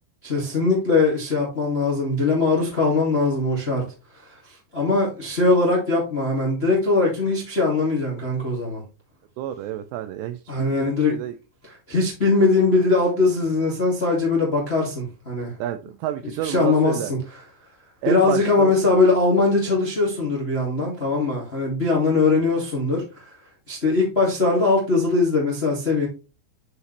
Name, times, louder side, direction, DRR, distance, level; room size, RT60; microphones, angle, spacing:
voice 1, 0.2-3.8 4.1-8.8 10.5-11.1 11.6-15.5 16.4-17.2 18.0-23.3 23.7-26.1, left 3 dB, 30° left, 1.1 m, -21 dB
voice 2, 9.4-11.4 15.6-17.1 18.0-18.7, right 11 dB, 85° right, 2.5 m, -29 dB
9.5 x 4.8 x 3.3 m
omnidirectional pair, 5.5 m